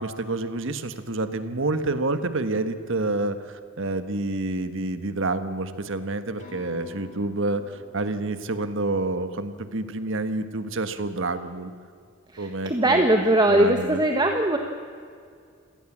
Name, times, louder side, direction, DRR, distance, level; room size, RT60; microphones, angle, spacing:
voice 1, 0.0-7.6 7.9-11.7 12.4-13.0 13.5-14.0, right 2 dB, 65° right, 10 dB, 1.5 m, -28 dB
sound 1, 6.4-10.2, left 3 dB, 40° left, 5.9 m, -50 dB
voice 2, 12.3-14.6, right 1 dB, 20° right, 4 dB, 1.4 m, -20 dB
27.5 x 18.0 x 7.5 m, 2.2 s
head